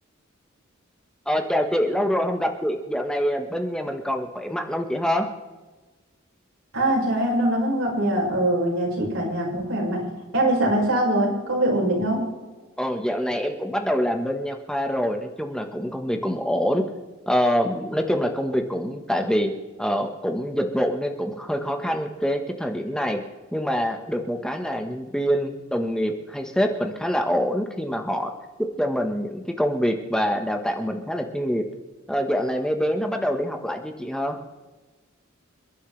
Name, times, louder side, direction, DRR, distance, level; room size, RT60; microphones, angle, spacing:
voice 1, 1.3-5.3 12.8-16.8 17.3-19.5 19.8-23.2 23.5-28.3 28.8-31.6 32.1-34.4, equal, 5° left, 3 dB, 1.3 m, -25 dB
voice 2, 6.7-10.0 10.3-12.2, right 1 dB, 90° right, -2 dB, 5.4 m, -22 dB
28.5 x 11.0 x 3.3 m, 1.2 s
head